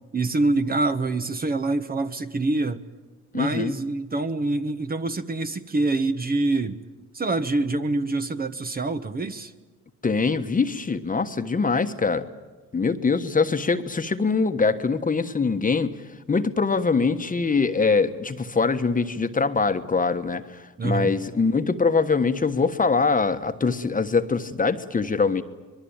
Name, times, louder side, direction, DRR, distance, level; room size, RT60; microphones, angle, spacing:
voice 1, 0.1-2.8 3.3-6.8 7.1-9.5 20.8-21.1, right 2 dB, 30° right, 9 dB, 1.3 m, -25 dB
voice 2, 3.3-3.7 10.0-12.3 12.7-16.0 16.3-25.4, left 4 dB, 25° left, 9 dB, 1.3 m, -23 dB
25.0 x 21.5 x 8.9 m, 1.3 s
cardioid pair, 90°, 30 cm